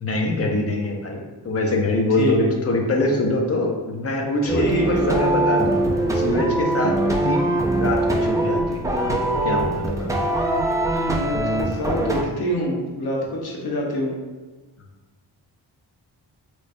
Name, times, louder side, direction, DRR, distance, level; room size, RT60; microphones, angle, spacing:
voice 1, 0.0-5.8 6.1-8.8 9.4-10.1, left 2 dB, 35° left, 1 dB, 0.6 m, -24 dB
voice 2, 2.1-2.5 4.4-5.0 6.7-7.0 10.9-14.2, equal, 60° left, -2 dB, 0.9 m, -26 dB
sound 1, 4.5-12.2, right 1 dB, 10° right, 0.3 m, -22 dB
3.2 x 3.1 x 2.5 m, 1.3 s
cardioid pair, 85°, 42 cm